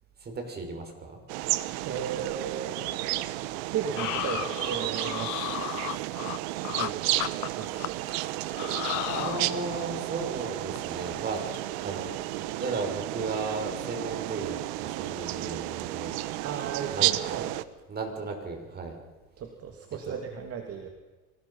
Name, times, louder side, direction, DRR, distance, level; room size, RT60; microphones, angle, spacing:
voice 1, 0.2-1.2 9.1-11.4 11.8-12.1 12.6-16.1 16.9-17.4 17.9-19.0 20.1-20.2, right 3 dB, 30° right, 3 dB, 6.3 m, -35 dB
sound 1, 1.3-17.6, right 17 dB, 85° right, 1.2 m, -32 dB
voice 2, 1.8-3.3 3.7-5.9 6.7-7.9 16.4-17.6 19.4-20.9, right 7 dB, 45° right, 5 dB, 2.8 m, -36 dB
sound 2, 4.0-6.9 7.2-8.2 8.5-9.9 10.3-10.5 10.7-11.0 11.3-11.6 11.9-12.1, left 23 dB, 65° left, 0.7 m, -34 dB
25.5 x 20.0 x 5.8 m, 1.2 s
cardioid pair, 120°, 32 cm